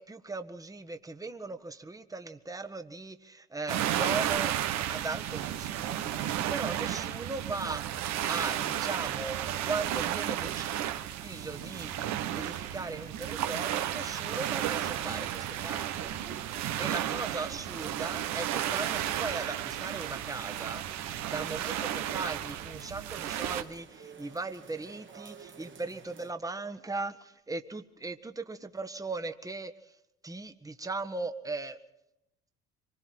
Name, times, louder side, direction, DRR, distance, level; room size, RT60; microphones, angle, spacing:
voice 1, 0.0-4.5 4.9-6.0 6.5-9.4 9.6-10.7 11.2-11.9 12.3-16.1 16.8-29.7 30.2-31.8, right 3 dB, 10° right, 9 dB, 1.6 m, -38 dB
sound 1, 3.7-23.6, right 11 dB, 60° right, 1.5 m, -33 dB
sound 2, 9.0-26.3, right 6 dB, 40° right, 2.2 m, -52 dB
26.0 x 22.0 x 4.8 m, 0.85 s
hypercardioid pair, 60°, 31 cm